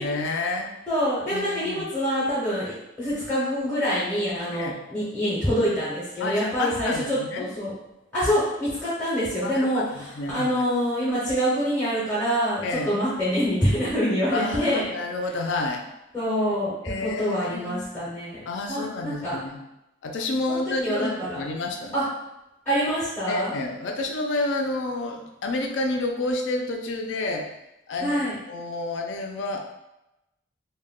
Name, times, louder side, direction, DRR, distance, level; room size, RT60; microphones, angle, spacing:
voice 1, 0.0-0.7 1.3-1.9 4.5-4.8 6.2-7.4 9.4-10.5 12.6-12.9 14.3-15.8 16.8-17.8 18.5-19.6 20.0-22.1 23.3-27.5 27.9-28.2 28.5-29.8, left 2 dB, 75° left, 3 dB, 0.4 m, -29 dB
voice 2, 0.9-7.7 8.1-14.9 16.1-19.4 20.5-21.4 21.9-22.1 22.7-23.5 28.0-28.3, equal, 5° left, -7 dB, 0.5 m, -26 dB
2.1 x 2.1 x 3.5 m, 0.91 s
head